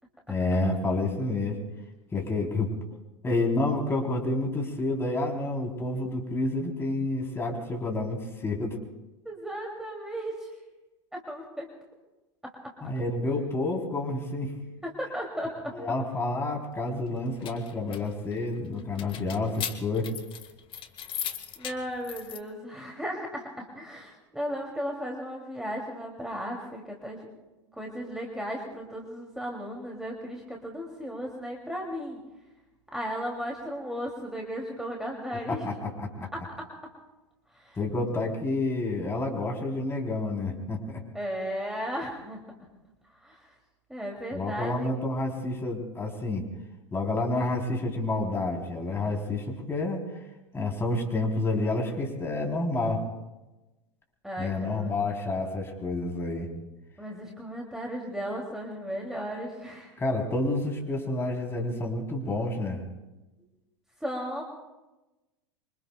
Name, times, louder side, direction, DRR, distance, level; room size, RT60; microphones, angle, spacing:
voice 1, 0.3-1.6 2.1-2.7 3.2-8.8 12.8-14.5 15.7-20.1 35.5-36.3 37.8-41.0 44.3-46.5 46.9-50.0 50.5-53.0 54.4-56.5 60.0-62.8, left 2 dB, 15° left, 0 dB, 3.5 m, -29 dB
voice 2, 9.2-10.5 11.1-11.7 12.4-12.5 14.8-15.7 21.6-27.3 27.8-32.2 32.9-35.6 36.3-36.7 37.5-37.8 41.1-42.4 43.2-43.5 43.9-44.9 54.2-54.9 57.0-59.9 64.0-64.4, equal, 5° right, -1 dB, 2.6 m, -35 dB
sound 1, 17.1-22.4, left 9 dB, 35° left, 1.3 m, -39 dB
26.5 x 24.0 x 2.3 m, 1.0 s
figure-of-eight pair, 85°, 15 cm